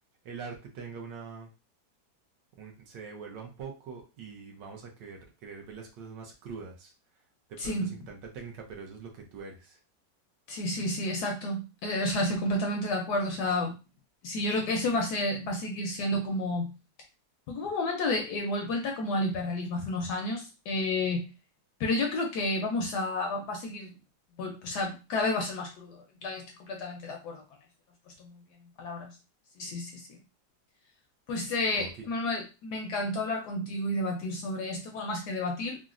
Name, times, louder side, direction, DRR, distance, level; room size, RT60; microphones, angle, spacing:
voice 1, 0.2-1.5 2.5-6.9 7.5-9.8 31.7-32.1, right 5 dB, 70° right, 1 dB, 1.3 m, -43 dB
voice 2, 7.6-7.9 10.5-13.7 14.2-16.7 17.5-21.3 21.8-23.9 24.4-27.4 28.2-28.3 28.8-29.1 29.6-30.2 31.3-35.8, left 2 dB, 70° left, 2 dB, 1.0 m, -31 dB
3.8 x 2.1 x 2.4 m, 0.30 s
omnidirectional pair, 2.1 m